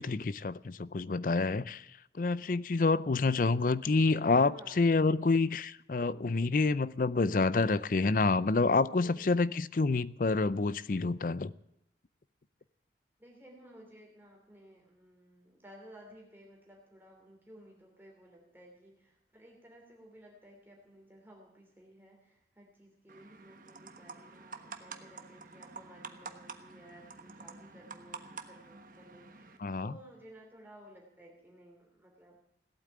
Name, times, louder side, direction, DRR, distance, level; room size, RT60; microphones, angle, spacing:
voice 1, 0.0-1.8 2.1-11.5 29.6-29.9, left 3 dB, 50° left, 0.5 m, -28 dB
voice 2, 4.5-4.8 9.0-9.3 13.2-32.4, equal, 10° right, 3.1 m, -56 dB
sound 1, 23.1-29.6, right 4 dB, 50° right, 1.2 m, -48 dB
17.5 x 8.6 x 8.7 m
head